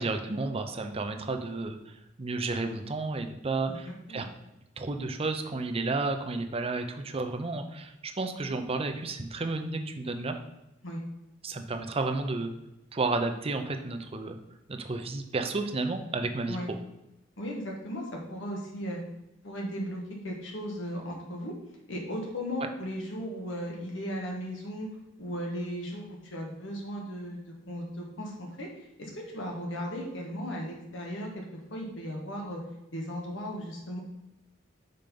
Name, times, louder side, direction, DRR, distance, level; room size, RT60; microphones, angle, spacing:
voice 1, 0.0-4.3 4.8-10.4 11.4-12.5 12.9-14.4 14.7-16.8, right 3 dB, 30° right, 6 dB, 0.6 m, -32 dB
voice 2, 3.7-4.3 10.8-11.0 16.5-16.7 17.4-19.0 19.4-21.5 21.9-24.9 25.2-32.6 32.9-34.0, equal, 85° left, -1 dB, 1.5 m, -36 dB
5.3 x 4.4 x 5.3 m, 0.88 s
head